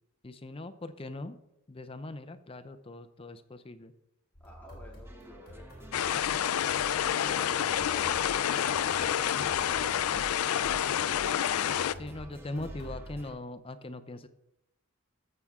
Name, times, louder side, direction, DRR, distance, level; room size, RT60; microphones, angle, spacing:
voice 1, 0.2-1.4 1.7-3.9 12.0-14.3, left 2 dB, 25° left, 10 dB, 0.6 m, -41 dB
sound 1, 4.3-13.3, equal, 45° left, 3.5 m, -48 dB
voice 2, 4.4-6.2 12.6-12.7, left 2 dB, 10° left, -3 dB, 2.3 m, -50 dB
sound 2, 5.0-13.3, right 1 dB, 10° right, 0.9 m, -54 dB
sound 3, 5.9-11.9, left 9 dB, 75° left, 0.4 m, -28 dB
13.5 x 7.3 x 3.6 m, 0.86 s
head